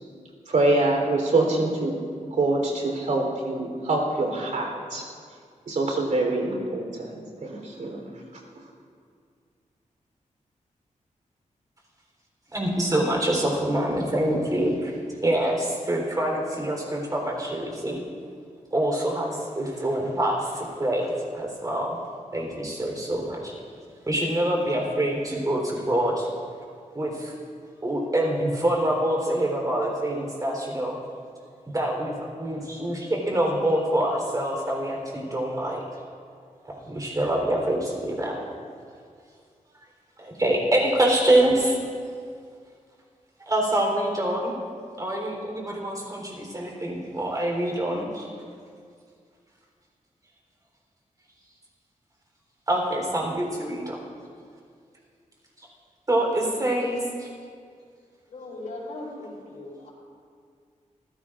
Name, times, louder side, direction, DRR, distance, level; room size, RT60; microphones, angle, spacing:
voice 1, 0.5-1.9 2.3-5.0 5.7-8.0, right 2 dB, 75° right, 0 dB, 3.7 m, -25 dB
voice 2, 12.5-14.9 15.2-18.0 18.7-22.0 22.3-23.5 24.1-26.3 26.9-27.3 27.8-31.0 31.7-35.8 36.7-38.4 40.2-41.8 43.5-44.5 45.0-48.3 52.7-54.0 56.1-57.3, right 1 dB, 25° right, 0 dB, 3.7 m, -25 dB
voice 3, 58.3-59.9, left 2 dB, 80° left, -4 dB, 4.6 m, -38 dB
27.5 x 16.0 x 2.5 m, 2.2 s
wide cardioid pair, 115°, 13 cm